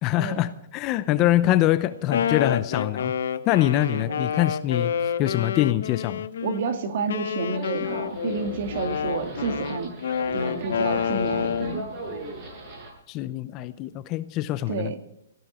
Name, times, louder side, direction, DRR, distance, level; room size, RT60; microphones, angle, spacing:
voice 1, 0.0-3.1 3.5-4.9 5.2-6.3 13.1-14.9, left 14 dB, 25° left, 0.7 m, -24 dB
Wind instrument woodwind instrument, 1.9-6.6 7.1-11.8, left 8 dB, 75° left, 1.1 m, -28 dB
voice 2, 3.9-4.2 6.4-9.9 10.3-11.9 14.7-15.0, right 4 dB, 55° right, 2.2 m, -30 dB
sound 1, 7.5-12.9, right 1 dB, 30° right, 7.8 m, -37 dB
18.0 x 15.5 x 4.4 m
hypercardioid pair, 165°, 0 cm